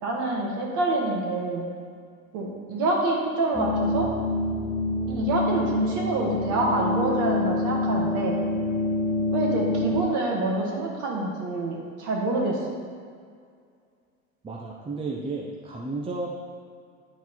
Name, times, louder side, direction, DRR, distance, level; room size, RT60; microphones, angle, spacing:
voice 1, 0.0-1.7 2.3-4.1 5.1-8.4 9.3-12.6, right 2 dB, 45° right, -1 dB, 1.8 m, -26 dB
sound 1, 3.5-10.0, left 2 dB, 10° left, 1.2 m, -27 dB
voice 2, 14.4-16.3, right 3 dB, 15° right, -2 dB, 0.8 m, -32 dB
9.7 x 4.0 x 4.1 m, 2.1 s
figure-of-eight pair, 80°, 43 cm